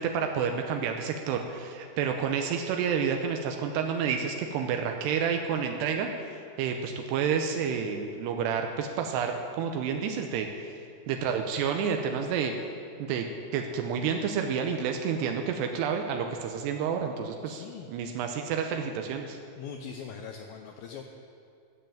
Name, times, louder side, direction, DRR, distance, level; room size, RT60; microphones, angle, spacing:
voice 1, 0.0-6.1 6.6-10.5 11.1-12.5 13.0-13.3 13.5-19.4, right 7 dB, 85° right, 4 dB, 2.8 m, -29 dB
voice 2, 17.4-17.9 19.6-21.0, left 7 dB, 80° left, 3 dB, 2.1 m, -41 dB
13.5 x 7.0 x 7.7 m, 2.6 s
omnidirectional pair, 4.9 m